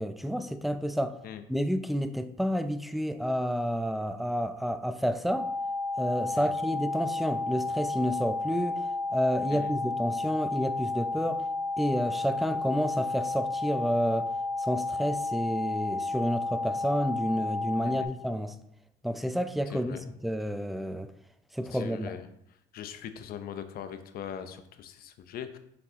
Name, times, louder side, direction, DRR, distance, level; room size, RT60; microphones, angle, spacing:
voice 1, 0.0-1.1 1.5-5.5 6.0-11.4 11.8-14.3 14.6-18.5 19.0-20.0 20.2-21.1 21.5-22.1, equal, ahead, 10 dB, 0.5 m, -30 dB
sound 1, 5.3-18.0, left 3 dB, 30° left, 1.5 m, -32 dB
voice 2, 19.7-20.0 21.7-22.3 22.7-25.6, left 9 dB, 60° left, 9 dB, 0.7 m, -41 dB
6.8 x 4.7 x 3.6 m, 0.76 s
cardioid pair, 110°, 17 cm